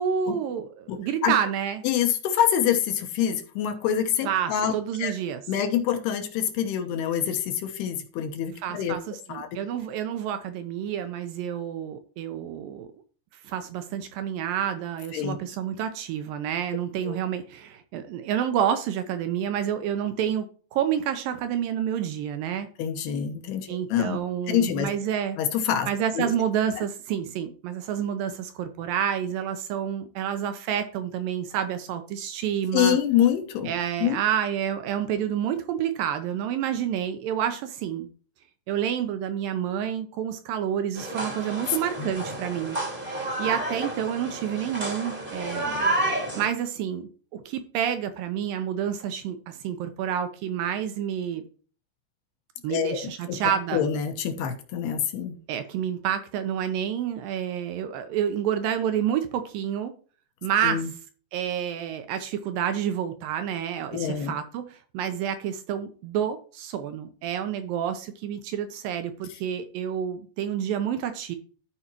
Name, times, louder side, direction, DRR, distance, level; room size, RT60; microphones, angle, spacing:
voice 1, 0.0-1.8 4.3-5.4 8.6-12.9 13.4-20.5 20.7-22.7 23.7-25.4 25.9-33.0 33.7-38.1 38.7-42.8 43.4-45.9 46.3-51.4 52.6-53.8 55.5-59.9 60.4-60.8 61.3-71.4, right 9 dB, 80° right, 9 dB, 2.0 m, -29 dB
voice 2, 0.9-1.3 1.8-4.7 5.0-5.1 5.5-9.0 9.3-9.6 15.1-15.4 17.1-17.2 22.8-24.2 24.5-24.9 25.4-25.9 26.2-26.3 32.7-33.7 34.0-34.2 42.0-42.1 52.7-53.4 53.7-55.4 60.6-60.9 63.9-64.4, left 9 dB, 75° left, 6 dB, 2.9 m, -26 dB
sound 1, 40.9-46.5, right 2 dB, 30° right, 0.9 m, -30 dB
13.5 x 5.0 x 2.9 m, 0.40 s
omnidirectional pair, 4.8 m